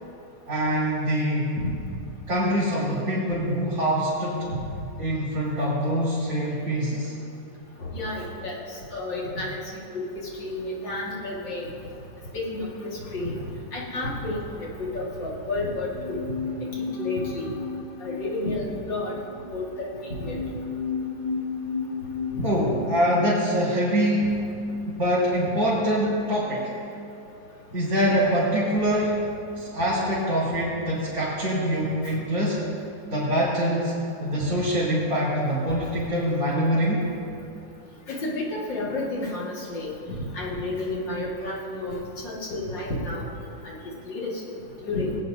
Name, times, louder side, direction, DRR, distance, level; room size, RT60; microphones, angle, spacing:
voice 1, 0.5-1.5 2.3-4.5 5.0-7.1 22.4-24.4 24.9-26.7 27.7-29.2 29.6-32.7 33.1-33.9 34.2-37.1, equal, 55° right, -11 dB, 3.6 m, -24 dB
voice 2, 7.9-9.6 9.9-11.7 12.3-13.4 13.7-16.2 17.0-17.5 18.0-19.1 19.5-20.4 22.3-22.5 24.2-24.3 29.8-29.9 38.1-43.3 43.6-43.7 44.0-44.4 44.8-45.2, left 2 dB, 75° left, -5 dB, 2.6 m, -31 dB
sound 1, 15.8-25.2 25.4-25.5, left 5 dB, 30° left, 1.7 m, -35 dB
20.0 x 8.9 x 2.7 m, 2.6 s
omnidirectional pair, 2.0 m